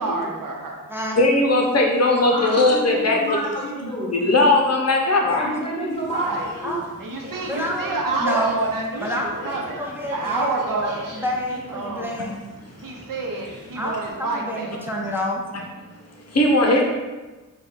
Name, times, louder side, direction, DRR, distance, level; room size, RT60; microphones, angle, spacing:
voice 1, 0.0-0.8 6.1-6.5 7.0-9.8 10.1-10.9 11.5-12.1 12.8-14.7, right 3 dB, 80° right, 0 dB, 0.8 m, -28 dB
voice 2, 1.2-3.4 4.1-5.5 16.3-16.8, left 2 dB, 50° left, 0 dB, 0.7 m, -18 dB
voice 3, 2.2-4.2 5.3-6.8 16.1-16.2, equal, 15° left, -4 dB, 1.2 m, -29 dB
sound 1, 5.9-14.1, equal, 35° right, 1.3 m, -39 dB
voice 4, 7.5-7.9 8.2-8.6 9.0-10.5 10.8-12.4 13.8-15.5, equal, 5° right, -2 dB, 0.6 m, -28 dB
4.4 x 2.3 x 4.0 m, 1.2 s
wide cardioid pair, 95°, 32 cm